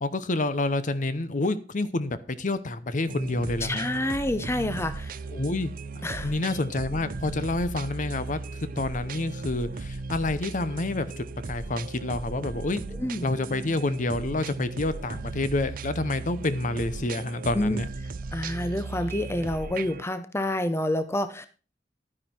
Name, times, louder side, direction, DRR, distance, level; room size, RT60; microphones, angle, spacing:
voice 1, 0.0-3.8 5.3-12.8 13.2-17.8, left 2 dB, 45° left, 13 dB, 0.8 m, -28 dB
sound 1, 3.1-20.0, right 3 dB, 50° right, 0.5 m, -37 dB
voice 2, 3.6-5.2 6.0-6.3 13.0-13.3 17.5-17.8 18.3-21.5, left 1 dB, 15° left, 11 dB, 0.7 m, -28 dB
11.0 x 9.8 x 4.4 m, 0.35 s
head